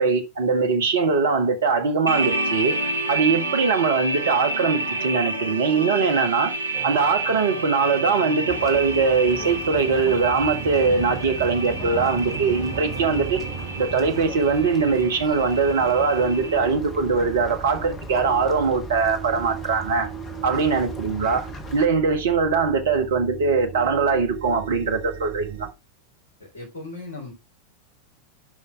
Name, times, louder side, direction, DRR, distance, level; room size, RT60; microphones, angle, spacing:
voice 1, 0.0-2.7 3.1-6.5 6.8-13.4 13.8-20.1 20.4-25.6, right 5 dB, 60° right, 1.6 m, -21 dB
sound 1, 2.1-16.6, right 2 dB, 80° right, 1.1 m, -30 dB
sound 2, 6.7-25.7, right 10 dB, 40° right, 0.9 m, -38 dB
sound 3, 8.5-21.9, left 3 dB, 20° left, 1.8 m, -40 dB
voice 2, 26.4-27.3, left 3 dB, 65° left, 3.3 m, -37 dB
11.5 x 5.2 x 3.5 m
figure-of-eight pair, 90°, 0 cm